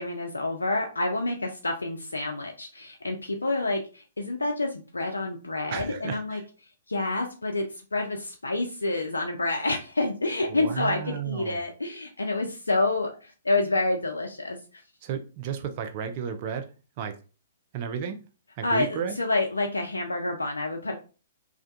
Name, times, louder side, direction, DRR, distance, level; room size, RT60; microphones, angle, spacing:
voice 1, 0.0-6.4 6.9-7.7 7.9-14.6 18.6-18.9 19.2-20.9, left 2 dB, 85° left, 3 dB, 0.3 m, -28 dB
voice 2, 5.7-6.4 10.5-11.6 15.0-16.7 17.0-17.1 17.7-18.2 18.6-19.1, right 7 dB, 40° right, 7 dB, 0.4 m, -33 dB
2.3 x 2.2 x 2.6 m, 0.34 s
figure-of-eight pair, 120°, 0 cm